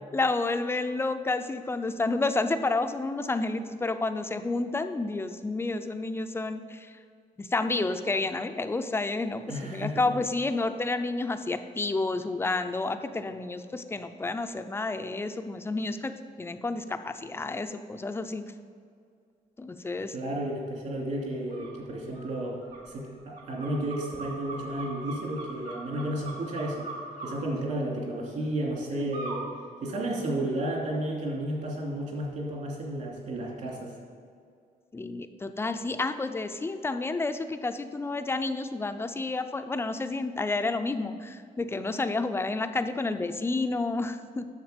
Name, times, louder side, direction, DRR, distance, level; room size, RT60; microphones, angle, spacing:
voice 1, 0.1-6.9 7.4-18.4 19.6-20.1 29.0-29.1 34.9-44.5, left 3 dB, 15° left, 9 dB, 0.4 m, -30 dB
voice 2, 9.5-10.1 20.1-22.6 22.9-26.9 27.2-29.4 29.8-33.9, right 1 dB, 55° right, -2 dB, 2.6 m, -32 dB
sound 1, 21.5-21.7 22.1-27.3 29.1-29.4 29.9-30.6, right 3 dB, 70° right, 2.9 m, -41 dB
10.5 x 7.2 x 5.1 m, 2.3 s
cardioid pair, 155°, 15 cm